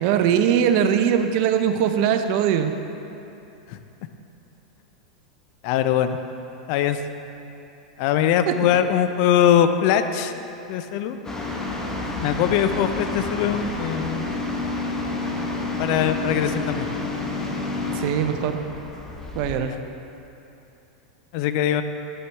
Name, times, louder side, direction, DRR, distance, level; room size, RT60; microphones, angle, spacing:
voice 1, 0.0-2.7 8.5-8.6 17.9-18.6 19.3-19.7, right 8 dB, 50° right, 8 dB, 0.5 m, -21 dB
voice 2, 5.6-6.2 6.7-7.0 8.0-10.3 10.7-11.2 12.2-14.3 15.8-16.9 19.6-19.8 21.3-21.8, left 10 dB, 50° left, 9 dB, 0.4 m, -21 dB
sound 1, 11.2-19.6, left 2 dB, 15° left, 1.0 m, -29 dB
8.8 x 6.6 x 3.4 m, 2.9 s
hypercardioid pair, 90°, 3 cm